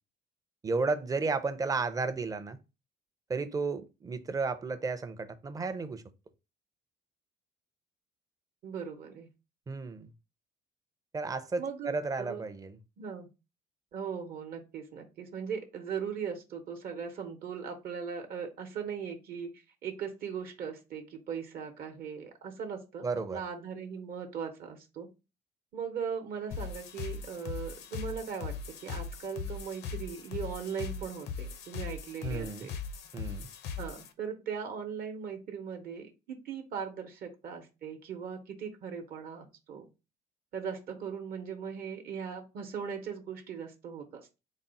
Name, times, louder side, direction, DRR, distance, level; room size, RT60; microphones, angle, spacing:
voice 1, 0.6-2.6 3.3-6.0 9.7-10.1 11.1-12.8 23.0-23.4 32.2-32.7 33.1-33.5, right 4 dB, 20° right, 0.4 m, -33 dB
voice 2, 8.6-9.3 11.6-12.4 13.0-13.3 13.9-23.0 23.3-25.1 25.7-28.5 28.8-32.8 33.8-39.8 40.5-44.4, right 7 dB, 60° right, 0.8 m, -39 dB
sound 1, 26.5-34.1, left 5 dB, 75° left, 0.6 m, -39 dB
4.1 x 2.0 x 3.9 m
cardioid pair, 110°, 17 cm